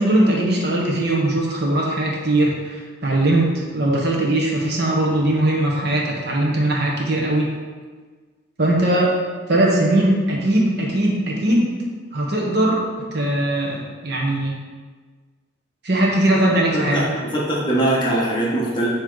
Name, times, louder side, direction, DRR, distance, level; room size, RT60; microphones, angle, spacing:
voice 1, 0.0-7.5 8.6-9.1 9.5-11.7 12.1-12.8 13.1-14.6 15.8-17.0, right 1 dB, 55° right, -2 dB, 1.1 m, -20 dB
voice 2, 16.7-18.9, right 1 dB, 20° left, -5 dB, 1.1 m, -21 dB
7.5 x 3.1 x 3.9 m, 1.4 s
head